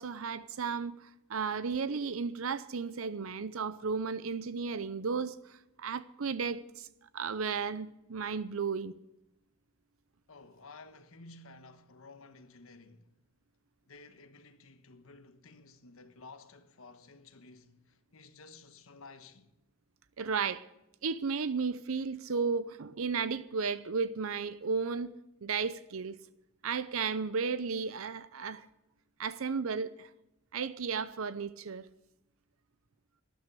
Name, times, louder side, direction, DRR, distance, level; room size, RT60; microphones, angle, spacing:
voice 1, 0.0-6.9 7.1-8.9 20.2-20.6 21.0-25.1 25.4-26.2 26.6-28.7 29.2-30.1 30.5-31.9, right 5 dB, 75° right, 0.6 m, -34 dB
voice 2, 10.3-13.1 13.9-19.5, left 3 dB, 80° left, 1.2 m, -54 dB
12.5 x 11.5 x 6.8 m
head